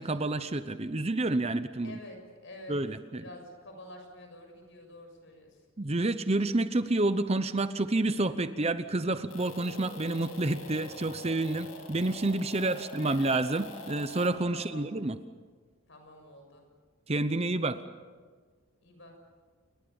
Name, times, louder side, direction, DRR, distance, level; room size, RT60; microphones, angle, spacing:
voice 1, 0.0-2.0 2.7-3.2 5.8-15.2 17.1-17.8, right 2 dB, 30° right, 11 dB, 0.8 m, -29 dB
voice 2, 1.8-2.8 3.2-5.5 12.6-13.3 14.5-14.9 15.9-16.6 18.8-19.1, left 1 dB, 55° left, 4 dB, 6.9 m, -48 dB
sound 1, 9.3-14.3, left 2 dB, 75° left, 5.8 m, -45 dB
29.0 x 22.0 x 7.1 m, 1.5 s
head